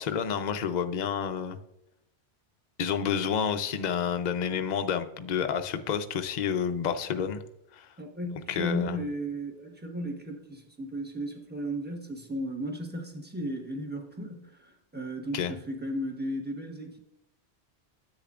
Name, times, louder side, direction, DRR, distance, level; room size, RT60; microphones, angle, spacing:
voice 1, 0.0-1.6 2.8-7.4 7.7-7.9 8.5-8.9 15.3-15.5, left 7 dB, 45° left, 7 dB, 0.6 m, -29 dB
voice 2, 8.0-17.0, equal, 10° right, 2 dB, 1.2 m, -35 dB
10.0 x 8.1 x 2.4 m, 0.85 s
omnidirectional pair, 1.2 m